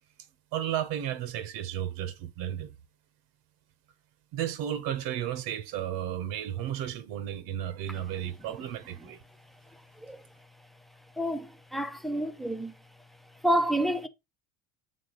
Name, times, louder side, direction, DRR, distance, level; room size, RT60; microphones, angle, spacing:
voice 1, 0.5-2.7 4.3-9.2, right 11 dB, 65° right, 0.9 m, -33 dB
voice 2, 11.2-12.7 13.4-14.1, right 1 dB, ahead, 0.5 m, -28 dB
6.6 x 3.8 x 3.8 m
supercardioid pair, 120°, 37 cm